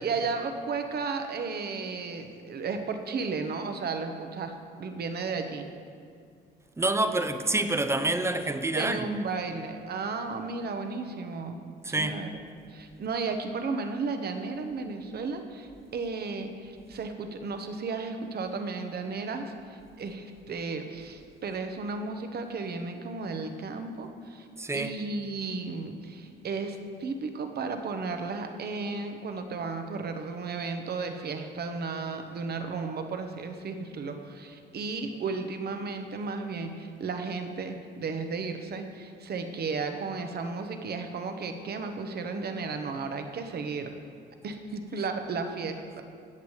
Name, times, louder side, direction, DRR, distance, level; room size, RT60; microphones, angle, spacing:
voice 1, 0.0-5.7 8.7-12.4 12.7-24.5 24.7-43.9 44.4-46.0, right 4 dB, 55° right, 6 dB, 0.9 m, -34 dB
voice 2, 6.8-9.0 11.8-12.2 24.6-25.0, right 2 dB, 15° right, 8 dB, 0.6 m, -27 dB
17.0 x 6.8 x 3.3 m, 2.3 s
cardioid pair, 90°, 20 cm